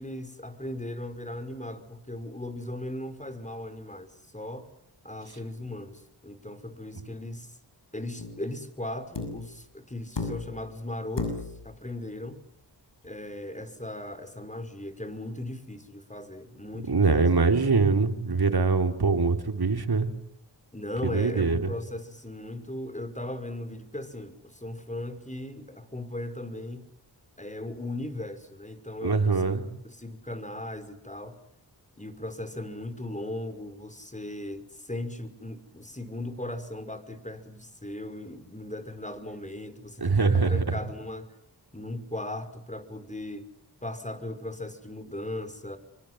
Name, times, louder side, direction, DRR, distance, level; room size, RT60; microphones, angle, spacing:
voice 1, 0.0-4.7 5.0-7.6 7.9-12.4 13.0-17.3 20.7-26.9 27.4-31.4 32.0-41.3 41.7-43.5 43.8-45.8, left 1 dB, 15° left, 10 dB, 5.5 m, -38 dB
sound 1, 8.2-8.5 9.1-9.5 10.2-10.7 11.2-11.7 13.1-13.2, left 3 dB, 70° left, 8.0 m, -34 dB
voice 2, 16.9-20.1 21.0-21.7 29.0-29.7 40.0-40.8, right 4 dB, 55° right, 6 dB, 4.0 m, -23 dB
27.0 x 25.0 x 8.2 m, 0.72 s
cardioid pair, 45°, 44 cm